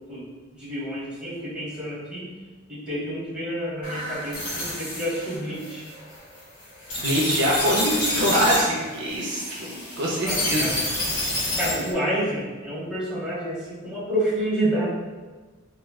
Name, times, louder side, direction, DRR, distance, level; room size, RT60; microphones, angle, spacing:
voice 1, 0.6-2.2 2.7-5.8 10.3-10.7 11.6-14.9, right 1 dB, 5° right, -9 dB, 1.1 m, -29 dB
sound 1, 3.8-11.9, left 1 dB, 65° left, 1.5 m, -29 dB
voice 2, 7.0-11.1, equal, 60° right, -3 dB, 0.5 m, -24 dB
4.3 x 2.2 x 2.2 m, 1.3 s
head